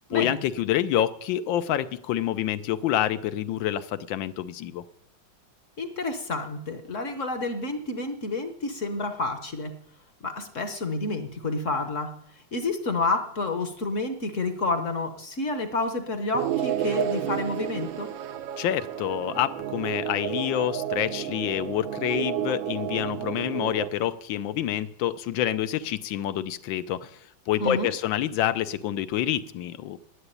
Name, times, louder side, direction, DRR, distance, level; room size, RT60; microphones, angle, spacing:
voice 1, 0.1-4.8 18.6-27.2 27.5-30.1, left 11 dB, 75° left, 13 dB, 1.4 m, -27 dB
voice 2, 5.8-9.7 10.2-12.1 12.5-18.1 27.6-27.9, left 3 dB, 45° left, 7 dB, 1.1 m, -29 dB
sound 1, 16.3-23.9, right 10 dB, 75° right, 1.5 m, -31 dB
11.0 x 8.0 x 9.9 m, 0.72 s
omnidirectional pair, 2.2 m